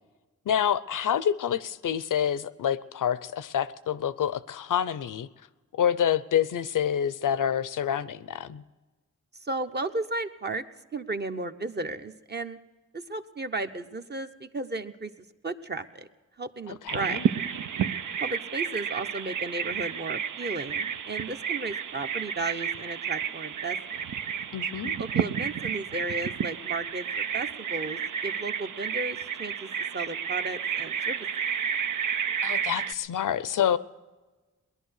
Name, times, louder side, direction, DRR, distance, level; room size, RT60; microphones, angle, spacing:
voice 1, 0.5-5.3 5.7-8.6 16.7-17.3 24.5-24.9 32.4-33.8, left 9 dB, 80° left, 16 dB, 0.6 m, -27 dB
voice 2, 9.4-10.6 10.9-12.6 12.9-15.1 15.4-16.1 16.4-17.2 18.2-24.0 25.0-29.7 29.9-31.3, right 2 dB, 35° right, 7 dB, 0.9 m, -34 dB
Bird vocalization bird call bird song, 16.9-32.9, right 8 dB, 75° right, 0.6 m, -31 dB
19.5 x 11.0 x 6.4 m, 1.3 s
cardioid pair, 75°, 31 cm